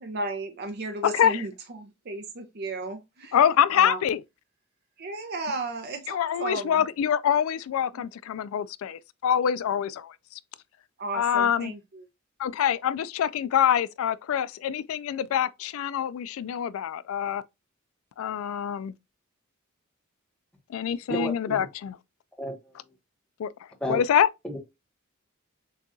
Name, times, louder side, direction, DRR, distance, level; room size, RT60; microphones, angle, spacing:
voice 1, 0.0-3.3 3.7-4.0 5.0-6.8 7.9-8.0 11.0-12.0, right 2 dB, 50° right, 0.5 m, -34 dB
voice 2, 1.0-1.5 3.3-4.2 6.1-10.4 11.1-11.7 12.4-17.4 18.2-18.9 20.7-22.0 23.4-23.5 23.9-24.3, left 9 dB, 70° left, 0.3 m, -25 dB
voice 3, 21.1-21.7 22.4-22.6 23.8-24.0 24.4-24.6, right 1 dB, 5° left, 0.9 m, -31 dB
6.4 x 2.3 x 2.6 m
head